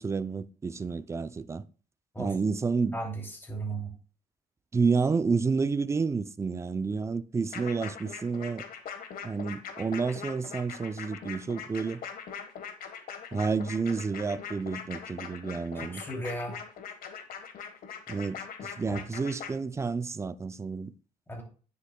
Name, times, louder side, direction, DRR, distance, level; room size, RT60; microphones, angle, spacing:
voice 1, 0.0-1.6 2.2-3.0 4.7-8.6 9.2-12.0 13.3-16.0 18.1-20.9, right 4 dB, 15° right, 0.4 m, -30 dB
voice 2, 3.4-3.9 15.8-16.6 18.9-19.0 21.3-21.4, right 2 dB, 10° left, 2.7 m, -35 dB
sound 1, 7.5-19.5, left 7 dB, 60° left, 1.3 m, -41 dB
9.8 x 6.7 x 2.2 m
cardioid pair, 110°, 17 cm